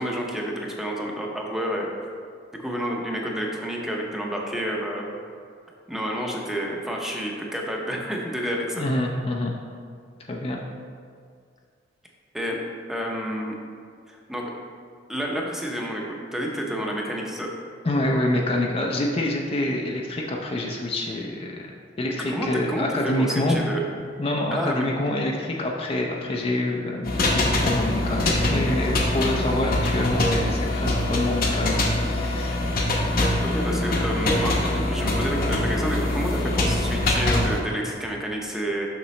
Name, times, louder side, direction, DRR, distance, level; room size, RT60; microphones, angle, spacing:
voice 1, 0.0-1.9 2.6-5.1 5.9-8.9 12.3-12.6 12.9-13.5 14.1-14.5 15.1-17.5 22.3-23.8 24.5-24.8 33.5-34.5 34.9-38.9, equal, ahead, -1 dB, 0.7 m, -29 dB
voice 2, 8.8-9.5 10.3-10.6 17.8-21.6 22.0-23.6 24.2-32.7, left 1 dB, 30° left, 0 dB, 0.5 m, -26 dB
sound 1, 27.0-37.6, left 1 dB, 50° left, 0.9 m, -23 dB
6.8 x 5.9 x 3.2 m, 2.2 s
head